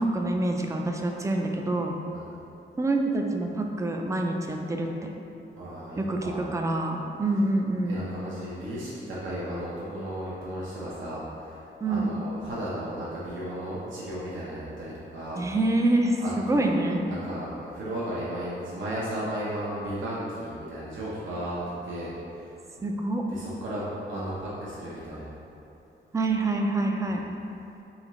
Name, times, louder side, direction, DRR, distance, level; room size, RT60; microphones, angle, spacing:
voice 1, 0.0-2.0 2.8-5.1 6.0-8.0 11.8-12.1 15.4-17.0 22.8-23.2 26.1-27.2, right 2 dB, 15° right, 2 dB, 0.3 m, -26 dB
voice 2, 5.6-6.5 7.9-15.5 16.2-22.5 22.8-22.9 23.2-25.3 27.1-27.2, right 1 dB, 75° right, -8 dB, 0.8 m, -35 dB
4.0 x 3.7 x 3.0 m, 2.9 s
wide cardioid pair, 120°, 20 cm